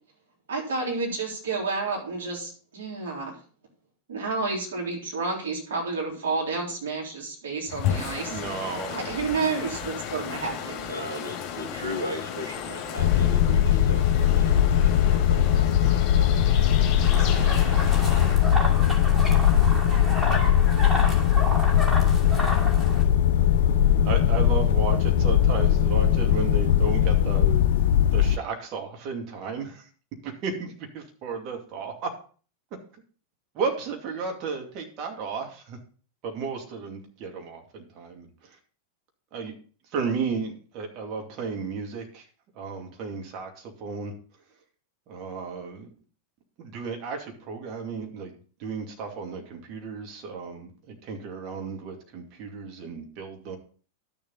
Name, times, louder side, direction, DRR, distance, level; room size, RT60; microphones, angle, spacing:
voice 1, 0.5-3.4 4.1-8.4 8.9-10.8, right 4 dB, 65° right, -2 dB, 4.0 m, -30 dB
sound 1, 7.7-18.4, left 8 dB, 35° left, 2.8 m, -34 dB
voice 2, 8.3-9.0 24.0-27.6 28.1-29.9 30.2-32.1 33.5-35.8 36.2-38.6 39.3-39.5 39.9-42.2 42.6-44.1 45.1-45.9 46.6-48.3 48.6-53.6, right 5 dB, 40° right, 3 dB, 2.4 m, -33 dB
voice 3, 10.8-17.8 18.0-18.2, equal, 85° right, 2 dB, 1.8 m, -38 dB
sound 2, 13.0-28.4, left 10 dB, 55° left, 0.5 m, -20 dB
sound 3, 17.0-23.0, equal, 5° right, 2.7 m, -31 dB
12.0 x 7.0 x 4.0 m, 0.41 s
figure-of-eight pair, 90°, 0 cm